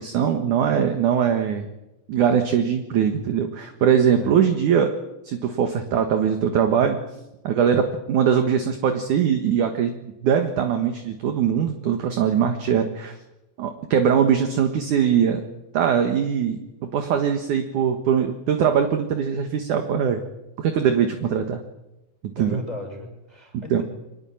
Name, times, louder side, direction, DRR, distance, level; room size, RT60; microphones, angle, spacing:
voice 1, 0.0-1.7 2.1-5.0 5.2-7.0 7.4-9.9 10.2-13.2 13.6-15.4 15.7-20.2 20.6-21.6 22.4-22.6 23.5-23.8, right 8 dB, 60° right, 6 dB, 2.6 m, -21 dB
voice 2, 21.2-21.5 22.4-23.8, left 2 dB, 10° right, 3 dB, 6.4 m, -37 dB
25.0 x 21.0 x 8.8 m, 0.95 s
omnidirectional pair, 4.7 m